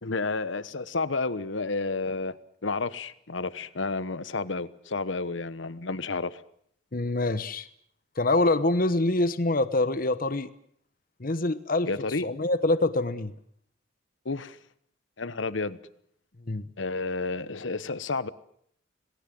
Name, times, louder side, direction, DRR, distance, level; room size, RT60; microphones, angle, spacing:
voice 1, 0.0-2.4 2.6-6.4 11.9-12.3 14.2-14.6 15.2-15.8 16.8-18.3, left 3 dB, 80° left, 1.1 m, -31 dB
voice 2, 6.9-7.7 8.2-10.5 11.2-11.9 12.2-13.3 16.5-16.6, left 2 dB, 50° left, 1.1 m, -25 dB
27.0 x 19.5 x 7.8 m
head